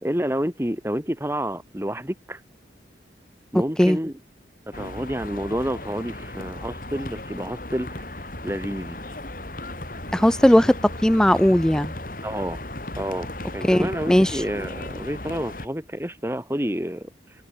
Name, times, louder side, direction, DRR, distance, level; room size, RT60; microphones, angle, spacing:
voice 1, 0.0-2.4 3.5-4.1 4.7-9.0 12.2-12.6 13.0-13.3 13.5-17.1, equal, 15° right, 3.0 m, -29 dB
sound 1, 4.7-15.7, left 1 dB, 50° left, 5.8 m, -36 dB
voice 2, 10.1-10.8 11.0-11.9 13.6-14.4, equal, 5° left, 0.3 m, -18 dB
head